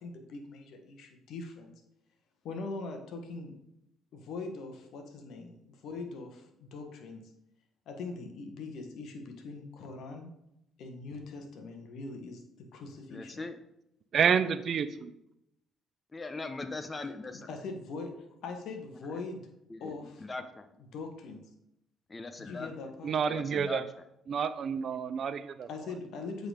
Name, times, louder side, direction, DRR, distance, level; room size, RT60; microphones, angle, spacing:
voice 1, 0.0-1.7 2.4-3.6 4.1-7.2 7.9-10.3 10.8-13.5 17.3-19.5 19.8-20.3 20.9-21.5 22.4-23.1 25.7-26.5, left 3 dB, 65° left, 4 dB, 1.4 m, -42 dB
voice 2, 13.1-13.6 16.1-17.5 19.7-20.7 22.1-22.7 23.3-23.8, left 3 dB, 25° left, 9 dB, 0.8 m, -40 dB
voice 3, 14.1-15.1 23.0-23.8 24.3-25.7, right 7 dB, 55° right, 12 dB, 0.6 m, -29 dB
7.7 x 4.0 x 5.0 m, 0.81 s
hypercardioid pair, 55°, 0 cm